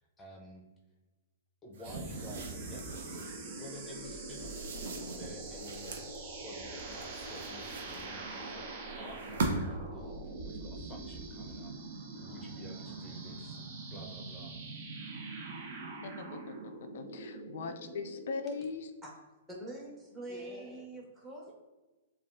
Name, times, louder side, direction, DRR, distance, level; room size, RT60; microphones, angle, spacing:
voice 1, 0.2-0.6 1.6-6.0 6.4-11.7 12.1-14.6 20.3-20.8, left 1 dB, 15° left, -1 dB, 0.7 m, -51 dB
sound 1, 1.7-3.4 4.3-6.2 6.8-8.4 9.1-9.9, right 3 dB, 65° right, 0.7 m, -39 dB
sound 2, 1.8-18.7, right 3 dB, 45° right, 1.1 m, -43 dB
voice 2, 16.0-18.9, left 5 dB, 65° left, 7 dB, 0.3 m, -40 dB
voice 3, 19.5-21.5, right 1 dB, 15° right, -3 dB, 1.5 m, -44 dB
6.9 x 2.4 x 2.5 m, 1.2 s
hypercardioid pair, 120°, 0 cm